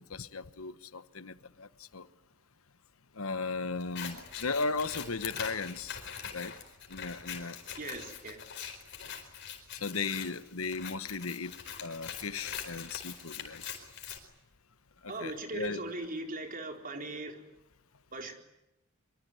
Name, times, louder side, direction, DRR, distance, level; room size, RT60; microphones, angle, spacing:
voice 1, 0.0-2.1 3.1-6.0 6.3-6.5 6.9-7.6 9.7-11.5 11.8-13.6 15.0-15.8, left 4 dB, 80° left, 1.2 m, -36 dB
Scissors, 3.8-14.2, left 7 dB, 55° left, 4.6 m, -43 dB
voice 2, 7.8-8.4 15.1-17.4 18.1-18.3, right 2 dB, 40° right, 4.2 m, -39 dB
24.5 x 23.5 x 9.6 m
head